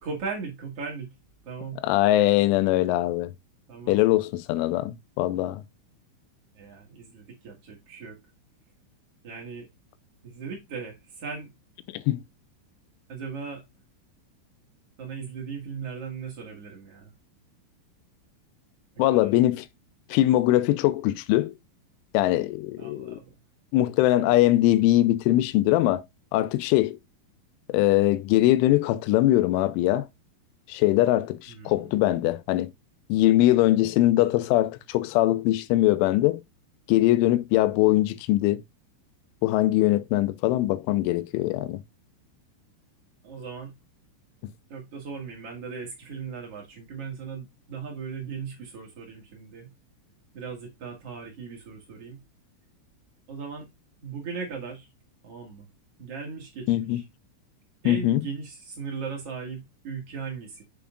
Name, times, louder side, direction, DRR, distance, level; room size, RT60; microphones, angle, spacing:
voice 1, 0.0-1.1 1.4-1.8 3.7-4.0 6.5-8.2 9.2-9.7 10.2-11.5 13.1-13.6 15.0-17.1 19.1-19.4 22.8-23.3 31.5-31.9 43.2-43.7 44.7-49.7 50.3-52.2 53.3-53.7 54.0-54.9 55.2-55.7 56.0-57.0 57.8-60.6, right 5 dB, 85° right, 1.3 m, -38 dB
voice 2, 1.8-3.3 3.9-5.6 11.9-12.2 19.0-19.7 20.1-21.5 22.1-23.2 23.7-26.0 26.3-27.0 27.7-30.1 30.7-32.7 33.1-36.4 36.9-38.6 39.4-41.8 56.7-57.0 57.9-58.2, left 15 dB, 85° left, 3.0 m, -22 dB
7.0 x 6.9 x 2.4 m
omnidirectional pair, 5.6 m